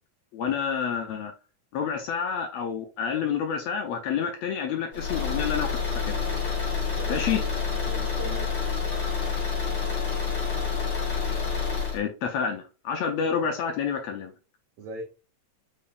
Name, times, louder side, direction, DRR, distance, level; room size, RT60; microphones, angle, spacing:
voice 1, 0.3-1.3 1.7-5.8 6.1-6.2 7.1-7.4 11.9-14.3, left 7 dB, 75° left, 1.6 m, -28 dB
Car / Engine, 4.9-12.0, left 6 dB, 45° left, 1.7 m, -28 dB
voice 2, 6.9-8.5 14.8-15.0, right 3 dB, 90° right, 1.3 m, -39 dB
5.4 x 3.5 x 2.5 m
omnidirectional pair, 3.5 m